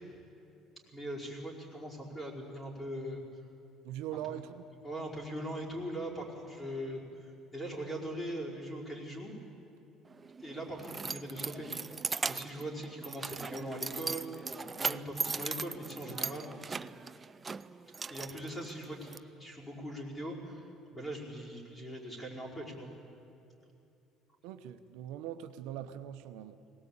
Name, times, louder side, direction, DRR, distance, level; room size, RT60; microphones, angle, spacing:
voice 1, 0.9-3.2 4.3-4.4 4.8-9.3 10.4-11.7 12.2-16.5 18.1-22.9, right 1 dB, 15° left, -3 dB, 5.0 m, -41 dB
voice 2, 3.8-4.6 24.4-26.6, right 11 dB, 85° right, 9 dB, 0.9 m, -41 dB
Keys jangling, 10.1-19.2, right 4 dB, 25° right, 0.5 m, -39 dB
21.5 x 18.5 x 8.7 m, 2.7 s
cardioid pair, 120°, 0 cm